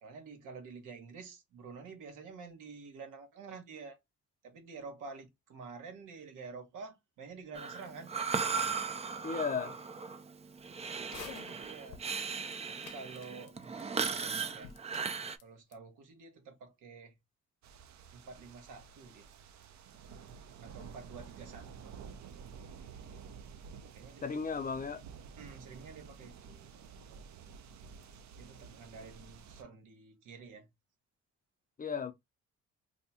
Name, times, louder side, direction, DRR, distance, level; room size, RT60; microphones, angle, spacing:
voice 1, 0.0-4.0 4.4-8.1 11.5-12.0 12.7-14.8 15.4-17.1 18.1-19.3 20.6-21.9 23.9-24.3 25.4-26.7 28.4-30.7, right 4 dB, 85° right, 1.1 m, -49 dB
Breathing, 7.5-15.4, right 5 dB, 20° right, 0.3 m, -37 dB
voice 2, 9.2-9.7 24.2-25.0 31.8-32.1, left 5 dB, 30° left, 0.6 m, -35 dB
sound 1, 11.0-12.1 12.5-12.6 12.8-13.8 14.1-14.2 14.4-15.4 15.7-15.8, left 9 dB, 80° left, 0.6 m, -49 dB
sound 2, 17.6-29.6, right 6 dB, 65° right, 0.6 m, -51 dB
2.8 x 2.3 x 4.1 m
cardioid pair, 90°, 30 cm